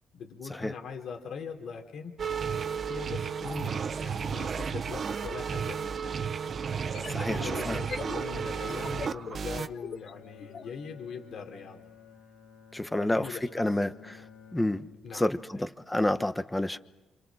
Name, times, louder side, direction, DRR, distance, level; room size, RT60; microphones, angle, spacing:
voice 1, 0.1-2.2 2.9-6.2 6.9-11.9 12.9-13.6 15.0-15.3, left 5 dB, 70° left, 4 dB, 3.5 m, -41 dB
sound 1, 2.2-9.7, right 6 dB, 50° right, 0.9 m, -33 dB
sound 2, 6.7-10.7, left 5 dB, 50° left, 1.4 m, -43 dB
voice 2, 7.1-7.8 12.7-14.3 14.5-14.9 15.1-16.8, left 1 dB, 10° left, 11 dB, 1.1 m, -29 dB
Bowed string instrument, 9.9-15.4, left 7 dB, 85° left, 2.1 m, -53 dB
28.5 x 26.5 x 6.3 m, 1.1 s
cardioid pair, 90°, 0 cm